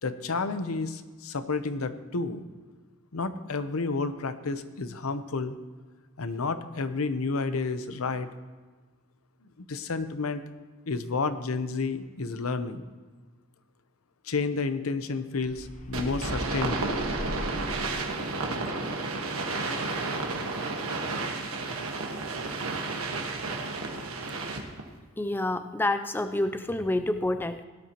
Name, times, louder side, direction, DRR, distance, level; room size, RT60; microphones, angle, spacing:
voice 1, 0.0-2.4 3.1-5.6 6.2-8.3 9.7-10.4 10.9-12.8 14.2-17.0, left 4 dB, 85° left, 11 dB, 0.8 m, -30 dB
sound 1, 15.4-18.2, left 1 dB, 35° left, 1.1 m, -38 dB
sound 2, 15.9-24.8, right 3 dB, 85° right, 1.5 m, -32 dB
voice 2, 25.2-27.6, left 1 dB, 10° left, 9 dB, 0.4 m, -28 dB
17.0 x 11.5 x 3.0 m, 1.4 s
head